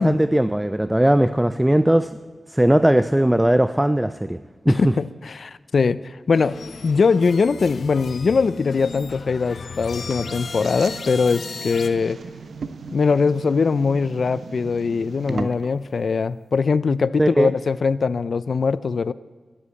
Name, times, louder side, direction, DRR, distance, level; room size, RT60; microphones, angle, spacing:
voice 1, 0.0-2.1 2.5-4.4 4.7-4.9 15.3-15.5 17.2-17.5, right 1 dB, 10° right, 12 dB, 0.4 m, -18 dB
voice 2, 4.7-6.0 6.3-6.6 6.8-12.2 12.9-19.1, left 5 dB, 65° left, 17 dB, 0.4 m, -21 dB
sound 1, 6.3-11.9, left 4 dB, 85° left, 1.0 m, -36 dB
sound 2, 10.1-15.8, right 5 dB, 90° right, 0.8 m, -38 dB
13.0 x 11.5 x 8.3 m, 1.4 s
wide cardioid pair, 115°, 0 cm